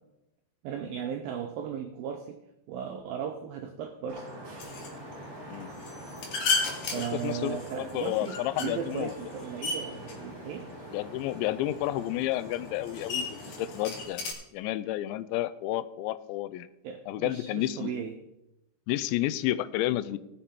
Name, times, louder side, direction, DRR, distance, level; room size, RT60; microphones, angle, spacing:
voice 1, 0.6-2.4 2.7-4.3 6.9-10.7 16.8-18.1, right 8 dB, 90° right, 6 dB, 2.0 m, -36 dB
Vehicle horn car horn honking / Traffic noise roadway noise, 4.1-14.0, right 1 dB, 25° right, 2.1 m, -45 dB
sound 1, 4.6-14.3, left 4 dB, 60° left, 3.3 m, -36 dB
voice 2, 6.9-9.1 10.9-16.7 17.1-18.0 18.9-20.2, left 14 dB, 90° left, 14 dB, 2.9 m, -31 dB
18.5 x 7.1 x 4.3 m, 0.91 s
omnidirectional pair, 5.1 m